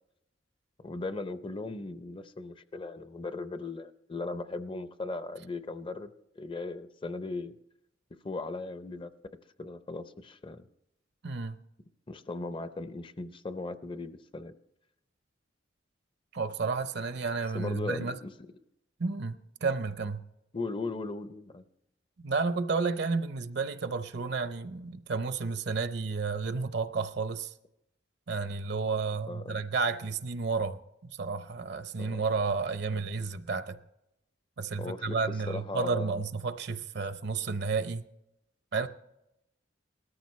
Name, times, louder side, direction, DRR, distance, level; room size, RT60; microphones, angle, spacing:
voice 1, 0.8-7.5 8.2-9.1 9.6-10.7 12.1-14.5 17.5-18.3 20.5-21.6 29.3-29.6 32.0-32.2 32.9-33.0 34.8-36.2, left 3 dB, 25° left, 0.6 m, -38 dB
voice 2, 11.2-11.6 16.3-18.2 19.0-20.2 22.2-27.5 28.3-33.8 34.6-38.0 38.7-38.9, right 4 dB, 60° right, 0.6 m, -31 dB
19.0 x 13.5 x 3.1 m
head